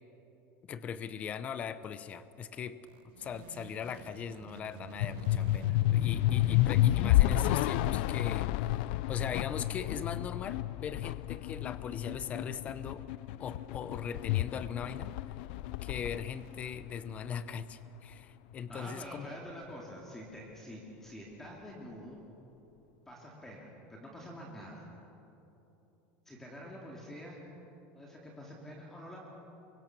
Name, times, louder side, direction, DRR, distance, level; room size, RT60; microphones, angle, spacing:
voice 1, 0.7-2.8 3.2-8.5 9.1-13.0 13.4-15.1 15.8-19.3, left 7 dB, 25° left, 13 dB, 0.7 m, -40 dB
sound 1, 2.7-8.0, right 12 dB, 75° right, 1.4 m, -49 dB
sound 2, 5.0-17.5, left 15 dB, 65° left, 0.5 m, -30 dB
voice 2, 18.7-22.2 23.1-24.9 26.2-27.4 27.9-29.2, equal, 5° left, -3 dB, 2.7 m, -46 dB
29.0 x 23.5 x 6.1 m, 3.0 s
cardioid pair, 175°, 6 cm